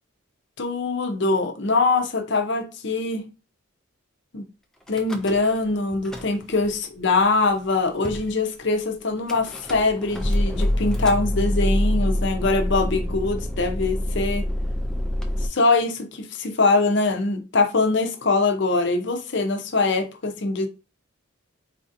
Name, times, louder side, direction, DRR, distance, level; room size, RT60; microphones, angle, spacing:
voice 1, 0.6-3.3 4.3-4.5 4.9-14.5 15.5-20.7, left 3 dB, 55° left, 0.6 m, -23 dB
Car / Engine starting / Idling, 4.9-5.7 5.9-6.7 7.4-7.5 7.6-7.7 8.0-8.3 9.3-15.5, left 1 dB, 5° left, 0.3 m, -26 dB
4.2 x 2.6 x 2.5 m
head